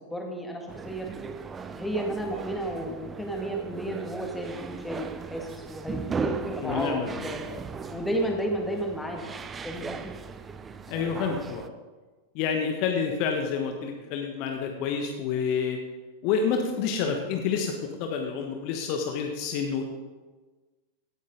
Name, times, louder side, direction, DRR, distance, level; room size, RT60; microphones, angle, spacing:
voice 1, 0.1-1.1 1.8-7.4 7.9-9.3 9.6-10.1, right 1 dB, 5° left, 1 dB, 2.0 m, -32 dB
sound 1, 0.7-11.7, right 5 dB, 20° right, 0.7 m, -37 dB
voice 2, 6.6-7.6 7.9-8.0 10.9-11.7 12.3-15.8 16.2-19.8, left 6 dB, 45° left, 4 dB, 1.3 m, -29 dB
16.5 x 9.6 x 3.9 m, 1.3 s
figure-of-eight pair, 90°, 0 cm